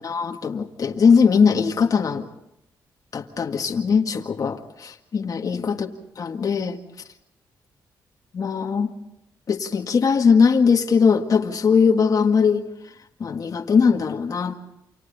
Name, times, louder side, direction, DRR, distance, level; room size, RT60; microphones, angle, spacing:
voice 1, 0.0-2.3 3.1-5.9 6.2-6.8 8.3-8.9 9.5-12.6 13.2-14.5, left 5 dB, 50° left, 3 dB, 1.9 m, -20 dB
29.5 x 27.0 x 4.1 m, 0.81 s
cardioid pair, 95°, 8 cm